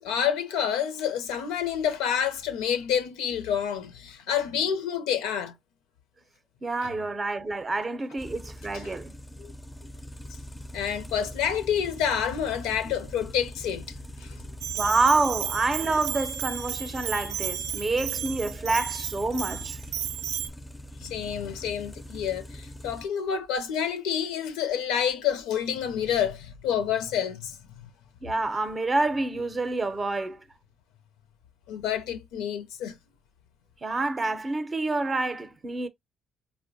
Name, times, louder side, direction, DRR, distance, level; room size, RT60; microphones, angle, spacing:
voice 1, 0.0-5.5 6.8-7.0 8.8-8.9 9.4-9.5 10.7-14.0 14.2-14.3 21.0-27.6 31.7-33.0, left 8 dB, 85° left, 0.5 m, -28 dB
voice 2, 6.6-9.1 14.7-19.8 28.2-30.4 33.8-35.9, right 3 dB, 30° right, 0.5 m, -27 dB
sound 1, 8.2-23.0, equal, 15° left, 0.4 m, -42 dB
Bell, 14.6-20.5, right 11 dB, 85° right, 0.3 m, -33 dB
4.4 x 2.1 x 2.6 m
supercardioid pair, 60°, 0 cm